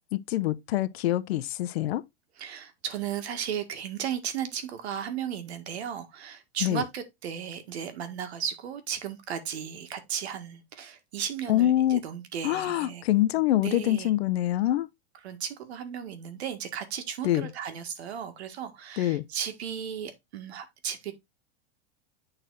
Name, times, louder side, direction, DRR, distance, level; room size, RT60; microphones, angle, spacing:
voice 1, 0.1-2.0 6.6-6.8 11.5-12.0 12.4-14.9 17.2-17.5 19.0-19.2, left 14 dB, 75° left, 0.7 m, -25 dB
voice 2, 2.4-13.0 13.4-14.1 15.2-21.1, right 8 dB, 85° right, 1.8 m, -35 dB
9.0 x 4.1 x 3.9 m
supercardioid pair, 170°, 32 cm